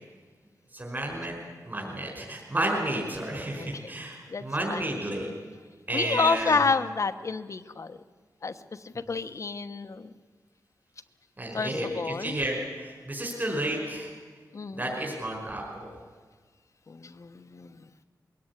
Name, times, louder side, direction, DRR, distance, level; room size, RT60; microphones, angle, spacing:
voice 1, 0.7-1.4 1.6-5.3 5.9-6.6 11.4-14.1 14.7-15.9, right 1 dB, 25° right, 0 dB, 5.1 m, -31 dB
voice 2, 5.9-8.0 8.4-8.5 8.8-10.1 11.5-12.4 14.5-14.9 16.9-17.7, left 4 dB, 50° left, 11 dB, 1.1 m, -29 dB
22.0 x 17.5 x 9.7 m, 1.5 s
wide cardioid pair, 105°, 7 cm